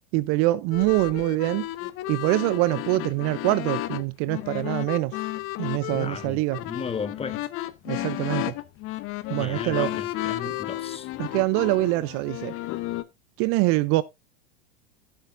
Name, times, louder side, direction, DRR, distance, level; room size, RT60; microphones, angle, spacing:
voice 1, 0.1-1.7 2.1-5.2 5.6-6.6 7.9-8.5 9.3-9.9 10.5-10.6 11.2-12.5 13.4-14.0, right 19 dB, 45° right, 0.5 m, -24 dB
sound 1, 0.7-13.0, left 16 dB, 40° left, 0.9 m, -33 dB
voice 2, 5.9-7.5 9.3-11.1, left 6 dB, 20° left, 1.3 m, -35 dB
15.0 x 7.0 x 2.5 m
hypercardioid pair, 95°, 32 cm